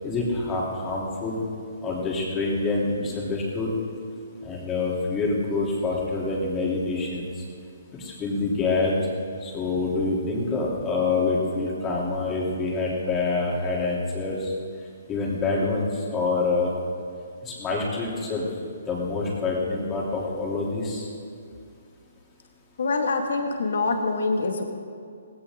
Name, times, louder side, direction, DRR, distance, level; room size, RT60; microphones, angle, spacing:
voice 1, 0.0-1.4 1.8-3.7 4.4-7.3 7.9-8.9 9.4-14.5 15.1-16.7 17.4-18.5 18.9-21.1, left 3 dB, 20° left, -4 dB, 3.4 m, -26 dB
voice 2, 22.8-24.6, left 3 dB, 70° left, 4 dB, 2.0 m, -25 dB
18.0 x 16.5 x 3.8 m, 2.4 s
hypercardioid pair, 145°, 0 cm